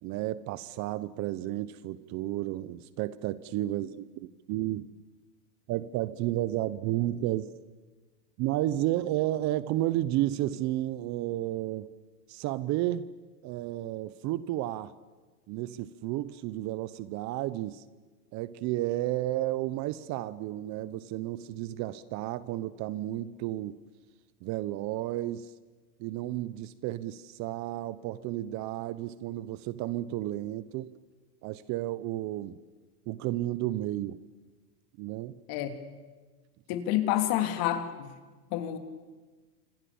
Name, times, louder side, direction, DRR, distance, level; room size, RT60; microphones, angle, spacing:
voice 1, 0.0-5.0 5.7-7.5 8.4-11.9 12.3-13.1 13.4-14.9 15.5-17.8 18.3-23.8 24.4-25.5 26.0-30.9 31.4-32.6 33.1-34.2 35.0-35.3, right 15 dB, 35° right, 0.8 m, -32 dB
voice 2, 36.7-38.1 38.5-38.8, left 12 dB, 45° left, 3.2 m, -28 dB
29.5 x 26.0 x 7.1 m
supercardioid pair, 130°, 49 cm